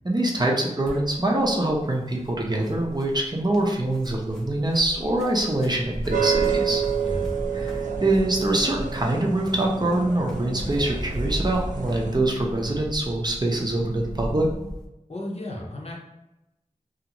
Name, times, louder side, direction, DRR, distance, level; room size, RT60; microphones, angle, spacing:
voice 1, 0.0-6.8 7.5-14.5, right 1 dB, 30° right, -1 dB, 0.6 m, -24 dB
sound 1, 0.8-14.8, equal, 5° left, 0.7 m, -36 dB
sound 2, 6.1-12.2, right 7 dB, 80° right, 0.5 m, -29 dB
voice 2, 7.0-7.3 15.1-16.0, left 1 dB, 50° left, -2 dB, 0.7 m, -34 dB
Telephone, 11.7-12.8 13.7-14.8, left 1 dB, 90° left, 0.5 m, -42 dB
2.6 x 2.5 x 2.9 m, 0.94 s
wide cardioid pair, 60°, 13 cm